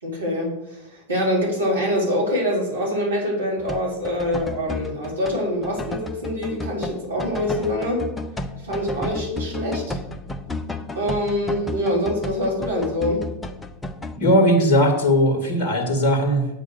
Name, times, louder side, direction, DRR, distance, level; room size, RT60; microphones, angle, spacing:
voice 1, 0.0-8.0 8.6-10.0 10.9-13.3, left 1 dB, 70° right, -3 dB, 3.8 m, -25 dB
sound 1, 3.6-14.2, left 2 dB, 10° left, 0.8 m, -32 dB
voice 2, 14.2-16.5, equal, 40° left, 2 dB, 2.1 m, -18 dB
8.3 x 7.9 x 6.6 m, 0.92 s
figure-of-eight pair, 90°, 0 cm